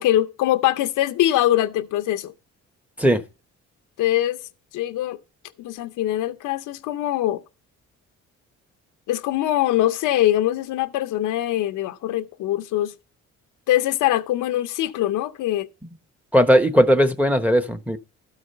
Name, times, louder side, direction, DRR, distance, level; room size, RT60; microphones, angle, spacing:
voice 1, 0.0-2.3 4.0-4.4 4.7-5.2 5.6-7.4 9.1-12.9 13.7-15.7, left 13 dB, 85° left, 0.7 m, -22 dB
voice 2, 16.3-18.0, equal, 5° right, 1.0 m, -17 dB
12.5 x 4.9 x 5.4 m
cardioid pair, 90°, 30 cm